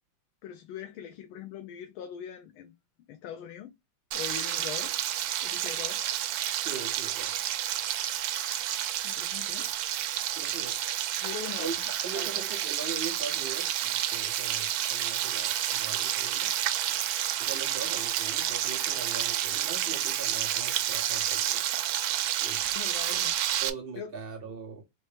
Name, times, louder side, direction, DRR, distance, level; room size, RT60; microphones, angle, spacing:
voice 1, 0.4-2.7 3.1-3.7 4.1-5.0 5.4-6.0 9.0-9.8 11.2-12.4 22.7-23.3 24.0-24.1, left 9 dB, 85° left, 1.5 m, -41 dB
Frying (food), 4.1-23.7, right 12 dB, 75° right, 1.3 m, -30 dB
voice 2, 6.6-7.4 10.4-10.8 11.6-16.5 17.4-21.6 22.4-22.8 23.1-23.2 23.6-24.8, right 5 dB, 60° right, 0.6 m, -41 dB
4.3 x 3.2 x 3.2 m
omnidirectional pair, 2.2 m